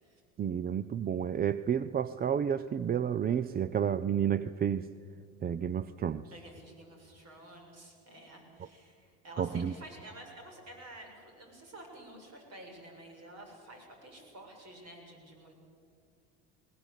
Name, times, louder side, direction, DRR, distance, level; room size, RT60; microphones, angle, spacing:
voice 1, 0.4-4.9 5.4-6.2 9.4-9.7, right 8 dB, 25° right, 16 dB, 0.5 m, -30 dB
voice 2, 6.3-15.5, right 1 dB, 45° right, 2 dB, 6.9 m, -50 dB
20.0 x 19.0 x 8.3 m, 2.4 s
supercardioid pair, 100°, 34 cm